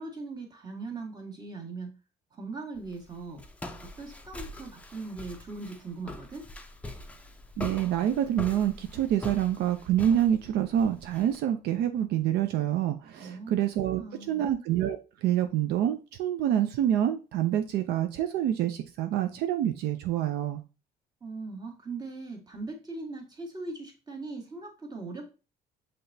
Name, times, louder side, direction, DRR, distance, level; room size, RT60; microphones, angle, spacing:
voice 1, 0.0-1.9 2.4-3.4 4.0-6.4 13.2-13.5 13.9-14.5 21.2-25.3, right 3 dB, 25° right, 1 dB, 1.4 m, -40 dB
Walk footsteps, 2.7-11.4, left 1 dB, 10° left, 0.5 m, -43 dB
voice 2, 7.6-20.6, right 11 dB, 80° right, 7 dB, 0.5 m, -27 dB
5.8 x 3.3 x 2.7 m, 0.32 s
cardioid pair, 110°, 17 cm